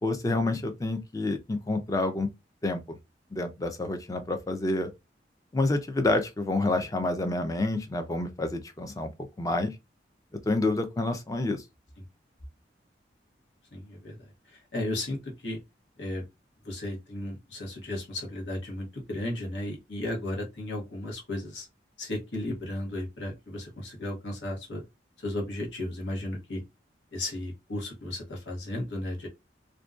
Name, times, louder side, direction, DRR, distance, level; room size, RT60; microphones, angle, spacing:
voice 1, 0.0-2.3 2.6-3.0 3.3-4.9 5.5-9.1 9.4-9.7 10.5-11.6, left 2 dB, 20° left, 0.3 m, -28 dB
voice 2, 13.7-14.2 14.5-15.6 16.0-16.2 16.6-21.7 22.0-24.8 25.2-26.6 27.1-29.3, left 1 dB, 85° left, 0.9 m, -34 dB
2.5 x 2.1 x 2.3 m
head